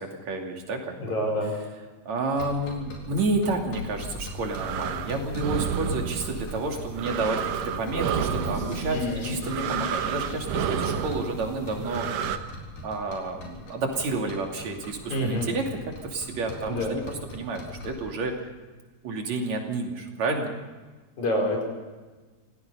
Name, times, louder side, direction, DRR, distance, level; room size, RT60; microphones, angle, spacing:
voice 1, 0.0-1.1 2.1-12.1 12.4-12.5 12.8-15.6 16.0-18.3 19.0-20.5, right 3 dB, 60° right, 2 dB, 3.9 m, -30 dB
voice 2, 1.0-1.5 8.9-9.3 15.1-15.5 16.7-17.0 21.2-21.6, equal, 60° left, 0 dB, 6.5 m, -27 dB
sound 1, 2.3-18.1, left 2 dB, 80° left, 5.7 m, -41 dB
sound 2, 4.1-12.4, right 8 dB, 90° right, 2.6 m, -31 dB
sound 3, 7.7-10.6, left 4 dB, 20° left, 7.1 m, -38 dB
27.5 x 17.5 x 5.5 m, 1.3 s
omnidirectional pair, 3.7 m